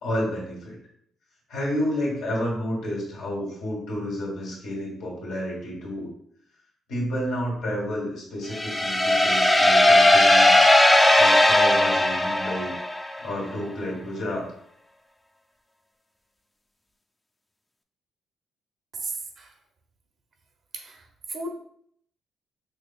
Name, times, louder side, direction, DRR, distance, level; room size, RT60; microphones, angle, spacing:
voice 1, 0.0-0.8 1.5-6.1 6.9-10.6 11.2-12.7 13.2-14.5, equal, 85° left, -3 dB, 1.5 m, -30 dB
sound 1, 8.5-13.2, left 1 dB, 10° left, 0.4 m, -18 dB
voice 2, 18.9-19.5 20.7-21.0 21.3-21.5, right 2 dB, 55° right, 3 dB, 0.6 m, -34 dB
4.5 x 3.0 x 2.3 m, 0.68 s
cardioid pair, 90°, 0 cm